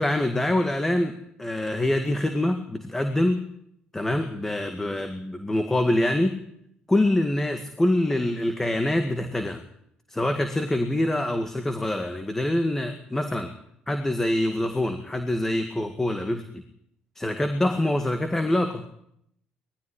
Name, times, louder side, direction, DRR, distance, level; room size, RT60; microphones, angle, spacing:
voice 1, 0.0-3.5 3.9-6.4 6.9-9.6 10.1-13.5 13.9-16.4 17.2-18.8, left 1 dB, 10° left, 7 dB, 2.0 m, -25 dB
20.0 x 13.5 x 9.9 m, 0.73 s
cardioid pair, 100°, 3 cm